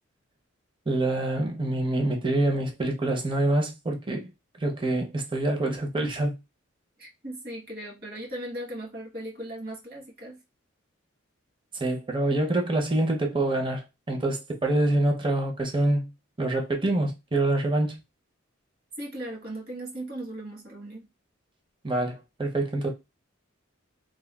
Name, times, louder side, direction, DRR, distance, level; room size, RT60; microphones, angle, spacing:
voice 1, 0.9-4.3 4.6-6.4 11.8-16.1 16.4-18.0 21.8-22.9, right 2 dB, 25° right, 0.6 m, -26 dB
voice 2, 7.0-10.4 19.0-21.1, right 1 dB, 50° right, 1.1 m, -38 dB
3.3 x 2.2 x 2.2 m
head